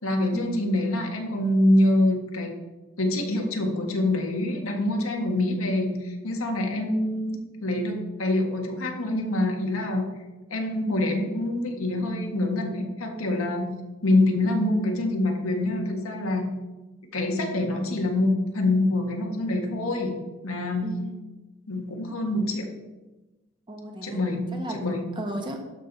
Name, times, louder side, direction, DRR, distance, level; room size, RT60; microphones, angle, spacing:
voice 1, 0.0-2.5 3.0-10.0 10.5-13.7 14.0-16.4 17.1-20.9 21.7-22.7 24.0-24.4 24.7-25.0, left 1 dB, 85° left, 2 dB, 1.7 m, -25 dB
voice 2, 6.7-7.1 20.8-21.1 23.7-24.2 24.5-24.8 25.2-25.7, equal, 25° right, 2 dB, 1.3 m, -34 dB
12.5 x 6.6 x 4.1 m, 1.1 s
head